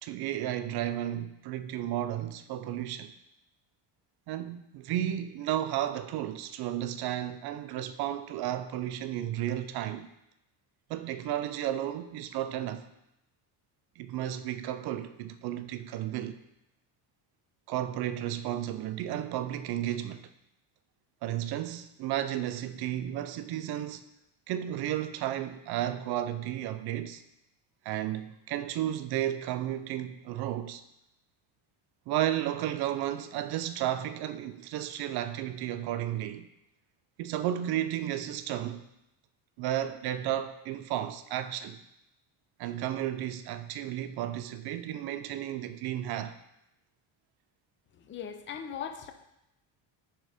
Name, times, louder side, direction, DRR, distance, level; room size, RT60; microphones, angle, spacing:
voice 1, 0.0-3.1 4.3-10.1 10.9-12.8 14.0-16.4 17.7-20.3 21.2-24.1 24.5-27.2 27.8-30.8 32.1-36.5 37.2-38.8 39.6-41.8 42.6-46.4, right 12 dB, 55° right, 0.5 m, -33 dB
voice 2, 47.9-49.1, left 8 dB, 25° left, 0.5 m, -39 dB
10.5 x 3.8 x 3.4 m
cardioid pair, 135°, 48 cm